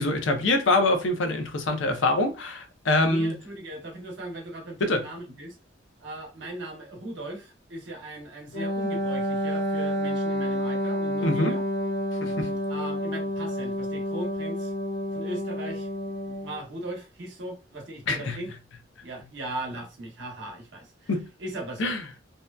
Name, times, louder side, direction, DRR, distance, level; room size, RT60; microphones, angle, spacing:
voice 1, 0.0-3.3 4.8-5.0 11.2-11.6 12.2-12.6 18.1-18.4 21.1-21.3 21.8-22.0, left 2 dB, 90° left, 0.6 m, -24 dB
voice 2, 2.9-5.5 6.0-11.6 12.7-14.7 15.1-15.9 16.3-18.5 19.0-21.1 21.4-21.9, right 1 dB, 65° right, 0.9 m, -38 dB
Wind instrument woodwind instrument, 8.5-16.6, left 1 dB, 70° left, 1.2 m, -29 dB
2.7 x 2.2 x 2.3 m
head